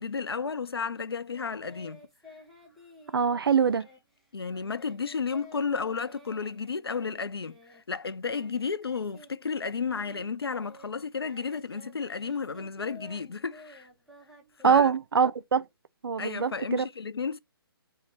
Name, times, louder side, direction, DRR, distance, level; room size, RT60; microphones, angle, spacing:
voice 1, 0.0-2.0 4.3-7.5 7.9-13.9 14.6-14.9 16.2-17.4, left 5 dB, 80° left, 0.4 m, -32 dB
Singing, 1.3-9.3 9.6-15.4, left 1 dB, ahead, 0.8 m, -52 dB
voice 2, 3.1-3.9 14.6-15.6 16.0-16.9, right 6 dB, 65° right, 0.4 m, -23 dB
4.5 x 2.2 x 3.0 m
figure-of-eight pair, 135°, 13 cm